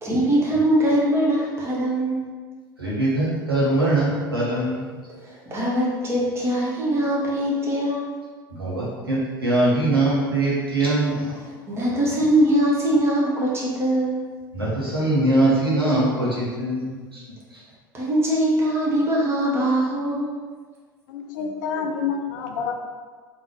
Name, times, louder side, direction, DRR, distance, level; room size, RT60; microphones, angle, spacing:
voice 1, 0.0-2.2 5.2-8.1 11.7-14.2 17.9-20.3, right 1 dB, 20° right, -5 dB, 1.1 m, -22 dB
voice 2, 2.8-4.8 8.5-11.4 14.5-17.2 17.5-17.6, right 2 dB, 85° right, -7 dB, 1.0 m, -22 dB
voice 3, 21.1-22.7, left 6 dB, 55° left, 4 dB, 0.4 m, -28 dB
3.6 x 2.9 x 3.1 m, 1.5 s
figure-of-eight pair, 75°, 12 cm